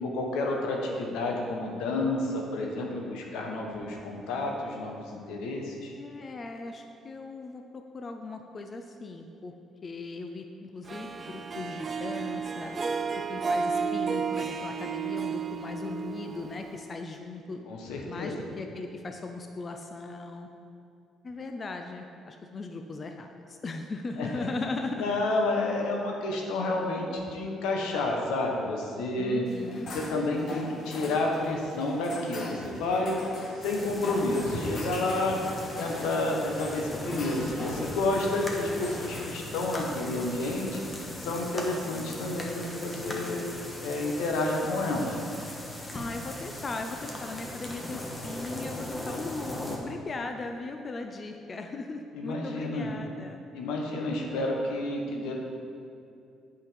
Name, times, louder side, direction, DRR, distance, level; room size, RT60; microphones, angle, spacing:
voice 1, 0.0-5.9 17.7-18.3 24.2-24.5 25.0-29.4 29.9-33.2 33.6-35.4 35.8-40.8 41.2-43.4 43.8-45.2 52.1-52.9 53.5-55.4, left 2 dB, 90° left, 0 dB, 1.2 m, -30 dB
voice 2, 6.0-9.5 9.8-12.7 13.3-17.7 18.0-20.5 21.2-25.1 29.2-29.9 45.9-53.4, left 3 dB, 35° left, 5 dB, 0.5 m, -38 dB
Harp, 10.9-17.1, right 5 dB, 40° right, 0.4 m, -32 dB
sound 1, 29.5-39.3, left 2 dB, 55° left, 1.3 m, -41 dB
sound 2, 33.6-49.8, left 1 dB, 20° left, 1.3 m, -39 dB
8.1 x 5.6 x 5.1 m, 2.5 s
cardioid pair, 90°, 0 cm